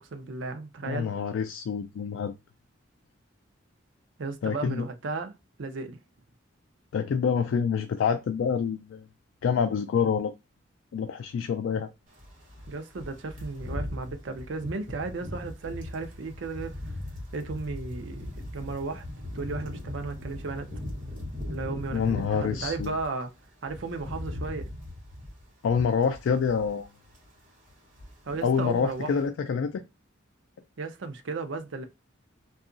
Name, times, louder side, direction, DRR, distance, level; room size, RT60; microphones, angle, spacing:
voice 1, 0.0-1.1 4.2-5.3 5.6-6.0 12.7-16.8 17.3-19.0 19.3-20.7 21.5-23.3 23.6-24.7 28.3-29.1 30.8-31.8, right 3 dB, 65° right, 0.5 m, -35 dB
voice 2, 0.8-2.3 4.4-4.9 6.9-9.0 9.4-10.3 10.9-11.9 21.9-23.0 25.6-26.9 28.4-29.8, left 6 dB, 70° left, 0.3 m, -27 dB
sound 1, 12.1-23.1 23.4-26.8 27.1-27.4 27.7-28.5 28.7-29.0, left 1 dB, 40° right, 1.1 m, -39 dB
2.8 x 2.3 x 2.5 m
head